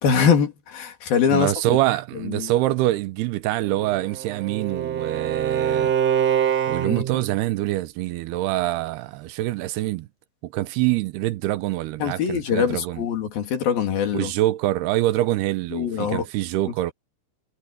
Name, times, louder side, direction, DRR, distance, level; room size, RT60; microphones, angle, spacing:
voice 1, 0.0-1.5 2.2-2.5 6.8-7.0 12.0-14.3 15.7-16.3, left 7 dB, 65° left, 4.4 m, -23 dB
voice 2, 1.3-5.9 6.7-10.1 10.4-13.0 14.1-16.9, right 16 dB, 85° right, 2.9 m, -25 dB
Bowed string instrument, 3.7-7.3, right 8 dB, 50° right, 2.4 m, -24 dB
omnidirectional pair, 4.5 m